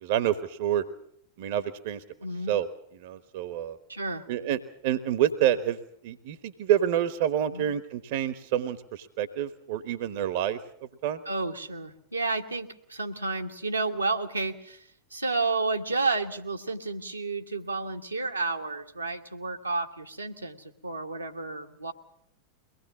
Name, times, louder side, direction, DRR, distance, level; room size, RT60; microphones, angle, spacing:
voice 1, 0.0-0.8 1.4-2.0 2.5-2.7 3.0-3.8 4.3-5.8 6.0-10.6 11.0-11.2, right 11 dB, 50° right, 14 dB, 1.1 m, -28 dB
voice 2, 2.2-2.5 3.9-4.2 7.5-7.7 11.2-21.9, right 3 dB, 85° right, 2 dB, 1.5 m, -31 dB
23.0 x 18.5 x 7.4 m, 0.70 s
figure-of-eight pair, 90°, 0 cm